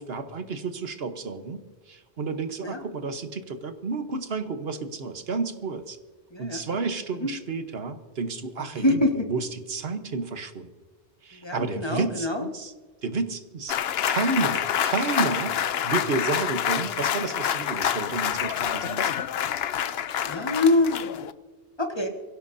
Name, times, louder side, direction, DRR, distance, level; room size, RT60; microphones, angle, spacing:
voice 1, 0.0-1.6 1.9-6.0 6.4-10.7 11.2-12.7 13.0-13.8 14.1-15.6 15.8-19.1, right 4 dB, 60° right, 9 dB, 1.3 m, -31 dB
voice 2, 6.3-6.6 7.2-7.3 8.7-9.3 11.4-12.5 20.2-21.2 21.8-22.1, left 2 dB, 25° left, 3 dB, 1.6 m, -25 dB
sound 1, 13.7-21.3, left 9 dB, 70° left, 0.8 m, -27 dB
23.5 x 16.5 x 2.7 m, 1.4 s
omnidirectional pair, 1.1 m